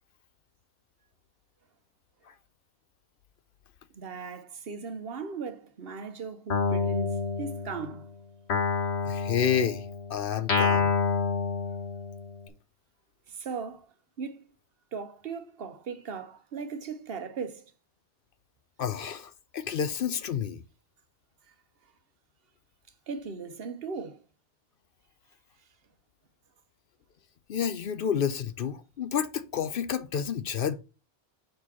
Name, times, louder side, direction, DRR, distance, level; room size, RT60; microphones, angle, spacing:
voice 1, 3.9-8.1 13.3-14.5 14.9-17.7 21.5-21.6 23.1-24.2, right 5 dB, 65° right, 1.1 m, -38 dB
Guitar, 6.5-8.0 8.5-12.4, left 5 dB, 75° left, 1.5 m, -28 dB
voice 2, 9.0-10.9 18.8-20.6 27.5-30.8, left 8 dB, 60° left, 0.7 m, -30 dB
6.2 x 5.0 x 4.1 m
omnidirectional pair, 1.1 m